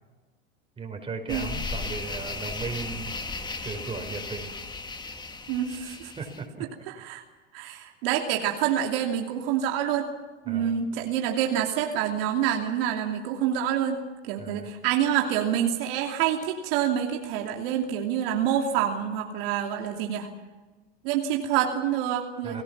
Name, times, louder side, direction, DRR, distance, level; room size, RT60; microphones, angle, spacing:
voice 1, 0.8-3.2 3.6-4.6 6.2-6.7 10.5-10.7 14.4-14.7 22.4-22.6, right 4 dB, 15° right, 4 dB, 5.1 m, -36 dB
sound 1, 1.3-6.4, left 3 dB, 15° left, 1.7 m, -36 dB
voice 2, 5.5-6.1 6.9-7.2 7.5-10.1 10.5-14.0 14.3-20.3 21.0-22.6, right 10 dB, 65° right, 1 dB, 2.8 m, -27 dB
29.0 x 17.5 x 6.0 m, 1.2 s
hypercardioid pair, 105°, 32 cm